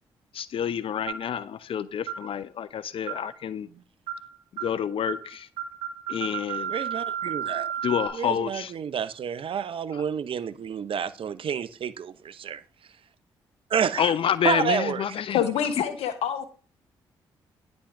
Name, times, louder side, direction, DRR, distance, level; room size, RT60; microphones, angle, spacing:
voice 1, 0.3-3.7 4.6-5.5 6.1-6.7 7.8-8.7 9.9-10.0 14.0-15.4, left 9 dB, 55° left, 0.6 m, -28 dB
sound 1, 1.1-1.3 2.1-2.3 3.1-3.3 4.1-4.3 4.6-4.8 5.1-5.3 5.6-8.1, right 9 dB, 75° right, 2.3 m, -32 dB
voice 2, 6.7-7.7 8.1-12.6 13.7-14.1 14.4-15.0, right 7 dB, 55° right, 0.7 m, -29 dB
voice 3, 15.3-16.5, left 9 dB, 70° left, 1.3 m, -26 dB
10.0 x 5.3 x 5.9 m
hypercardioid pair, 40°, 11 cm